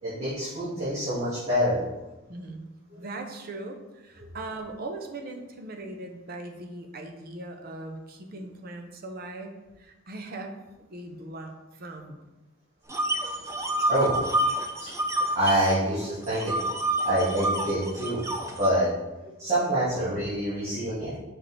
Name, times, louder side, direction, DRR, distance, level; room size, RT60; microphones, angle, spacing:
voice 1, 0.0-1.9 13.9-14.1 15.3-16.6 17.0-18.2 18.6-18.9 19.4-21.2, right 1 dB, 35° right, -12 dB, 2.0 m, -26 dB
voice 2, 2.3-2.6 3.0-10.6 10.9-12.2, right 2 dB, 50° right, 4 dB, 0.7 m, -39 dB
sound 1, 12.9-15.7 16.0-18.7, right 1 dB, 15° right, 0.5 m, -28 dB
6.3 x 4.5 x 3.3 m, 1.1 s
head